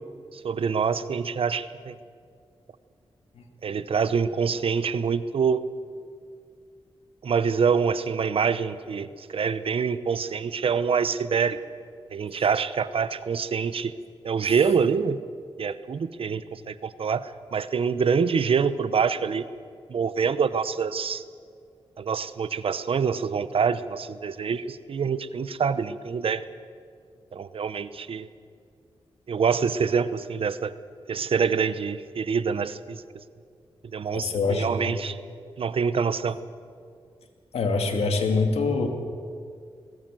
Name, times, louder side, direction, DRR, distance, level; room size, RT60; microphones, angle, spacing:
voice 1, 0.3-2.0 3.6-5.6 7.2-11.6 12.1-13.9 14.2-15.2 15.6-19.5 19.9-21.2 22.0-26.4 27.3-28.3 29.3-30.7 31.1-33.0 33.9-35.1 35.6-36.4, right 6 dB, 65° right, 14 dB, 0.9 m, -25 dB
voice 2, 34.1-34.9 37.5-38.9, left 3 dB, 85° left, 4 dB, 2.5 m, -25 dB
20.5 x 17.5 x 7.7 m, 2.2 s
cardioid pair, 65°, 10 cm